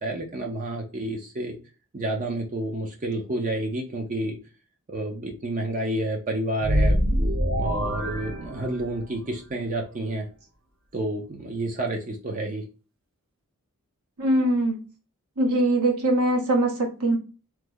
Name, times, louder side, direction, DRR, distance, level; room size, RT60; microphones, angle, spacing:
voice 1, 0.0-1.6 1.9-4.4 4.9-7.0 7.6-10.3 10.9-12.6, right 1 dB, 35° right, 1 dB, 0.6 m, -29 dB
sound 1, 6.6-9.1, equal, 65° right, 1.3 m, -25 dB
voice 2, 14.2-14.8 15.4-17.2, right 1 dB, 80° right, 0 dB, 1.1 m, -22 dB
3.1 x 2.0 x 3.5 m, 0.34 s
head